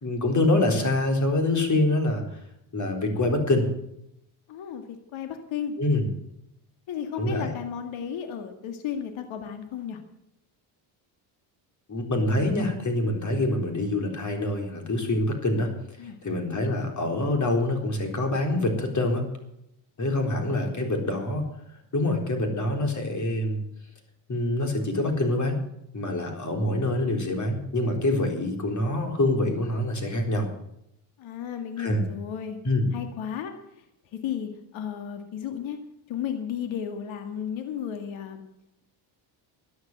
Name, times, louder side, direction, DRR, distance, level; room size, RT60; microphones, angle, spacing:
voice 1, 0.0-2.2 2.7-3.7 5.8-6.1 7.2-7.5 11.9-15.7 16.2-19.3 20.0-21.5 21.9-23.6 24.3-25.6 25.9-30.5 31.8-32.1 32.6-32.9, left 1 dB, 35° left, 4 dB, 4.0 m, -25 dB
voice 2, 4.5-5.7 6.9-10.0 16.0-16.2 20.2-20.7 31.2-32.6 32.9-33.8 34.1-35.8 36.1-38.4, left 8 dB, 65° left, 6 dB, 2.1 m, -34 dB
13.0 x 9.5 x 7.9 m, 0.82 s
supercardioid pair, 80°, 50 cm